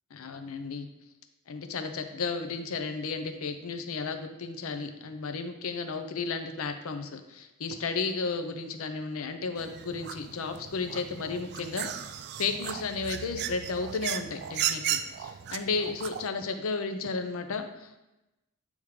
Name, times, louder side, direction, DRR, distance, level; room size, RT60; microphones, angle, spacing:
voice 1, 0.1-0.9 1.5-12.1 12.4-18.0, left 4 dB, 70° left, 7 dB, 0.6 m, -33 dB
sound 1, 9.6-16.3, right 10 dB, 50° right, 0.3 m, -36 dB
8.5 x 3.5 x 3.2 m, 0.98 s
head